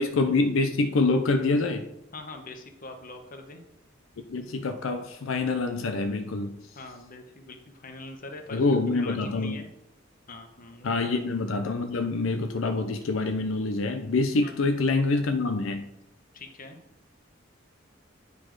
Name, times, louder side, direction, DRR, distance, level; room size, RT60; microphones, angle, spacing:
voice 1, 0.0-1.8 4.2-6.6 8.5-9.6 10.8-15.9, left 3 dB, 80° left, 7 dB, 0.5 m, -26 dB
voice 2, 2.1-3.6 6.7-8.6 9.0-9.7 10.3-11.1 14.4-14.6 16.3-16.8, left 2 dB, 45° left, 5 dB, 1.0 m, -43 dB
8.5 x 4.1 x 4.6 m, 0.82 s
head